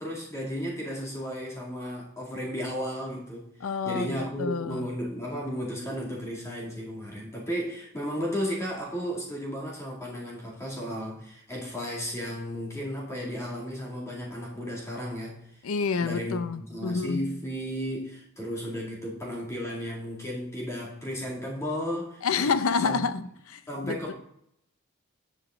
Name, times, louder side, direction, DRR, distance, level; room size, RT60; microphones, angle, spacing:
voice 1, 0.0-3.5 3.8-15.4 16.0-16.4 16.7-22.2 22.8-23.0 23.7-24.1, equal, 15° left, 2.2 m, -34 dB
voice 2, 3.6-4.9 15.6-17.4 22.2-24.1, left 5 dB, 65° left, 0.5 m, -29 dB
9.5 x 5.3 x 3.6 m
head